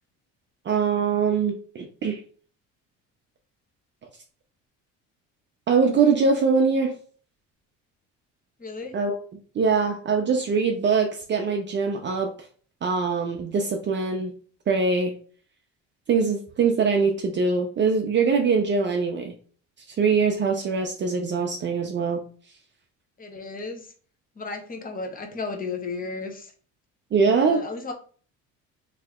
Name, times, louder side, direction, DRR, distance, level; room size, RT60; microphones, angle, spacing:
voice 1, 0.7-2.2 5.7-7.0 8.9-9.2 9.5-12.3 12.8-14.3 14.7-15.1 16.1-19.3 19.9-22.2 27.1-27.6, right 5 dB, 35° right, 3 dB, 0.6 m, -23 dB
voice 2, 8.6-8.9 23.2-23.9 24.4-26.5 27.5-27.9, left 4 dB, 25° left, 4 dB, 0.9 m, -34 dB
3.2 x 2.8 x 3.6 m, 0.43 s
cardioid pair, 110°, 32 cm